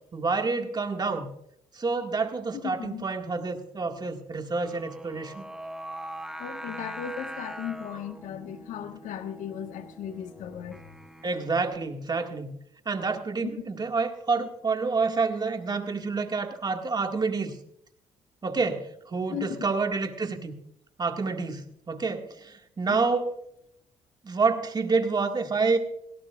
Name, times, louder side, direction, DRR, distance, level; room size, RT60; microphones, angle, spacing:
voice 1, 0.1-1.3 1.7-5.5 11.2-12.5 12.9-17.5 18.4-20.5 21.0-23.4 24.2-25.8, right 4 dB, 30° right, 5 dB, 1.9 m, -28 dB
voice 2, 2.6-3.0 6.4-10.9 19.3-19.6 22.9-23.0, left 9 dB, 75° left, 7 dB, 1.4 m, -36 dB
Singing, 4.6-11.7, right 1 dB, 5° right, 1.5 m, -42 dB
18.0 x 16.5 x 2.4 m, 0.72 s
supercardioid pair, 75°, 13 cm